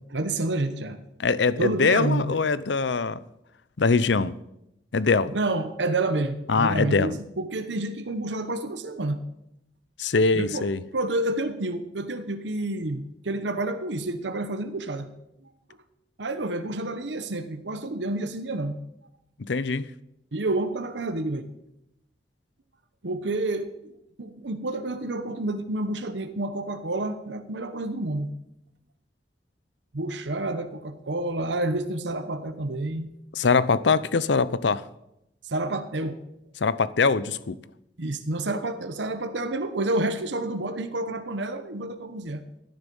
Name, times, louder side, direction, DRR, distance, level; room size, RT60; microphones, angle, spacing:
voice 1, 0.1-1.0 1.6-2.4 5.3-9.2 10.3-10.7 10.9-15.1 16.2-18.8 20.3-21.5 23.0-23.9 24.2-28.3 29.9-33.1 35.4-36.2 38.0-42.4, right 2 dB, 85° right, 1.0 m, -29 dB
voice 2, 1.2-3.2 3.8-4.3 4.9-5.3 6.5-7.2 10.0-10.8 19.4-19.9 33.4-34.8 36.6-37.6, left 4 dB, 80° left, 0.6 m, -22 dB
16.0 x 10.5 x 5.4 m
head